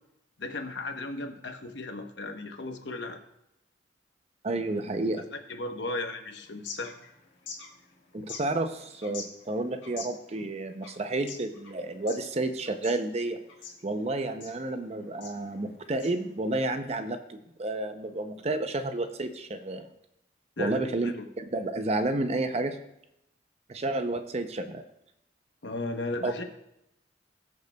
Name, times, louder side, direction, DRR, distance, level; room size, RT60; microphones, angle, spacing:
voice 1, 0.4-3.2 5.5-6.9 20.6-21.3 25.6-26.4, left 2 dB, 70° left, 6 dB, 1.0 m, -35 dB
voice 2, 4.4-5.2 8.1-13.4 13.8-19.9 20.6-22.8 23.7-24.8 26.2-26.3, right 2 dB, 35° right, 9 dB, 0.6 m, -31 dB
sound 1, 6.4-16.7, left 5 dB, 90° left, 1.5 m, -47 dB
19.5 x 6.6 x 2.3 m, 0.83 s
head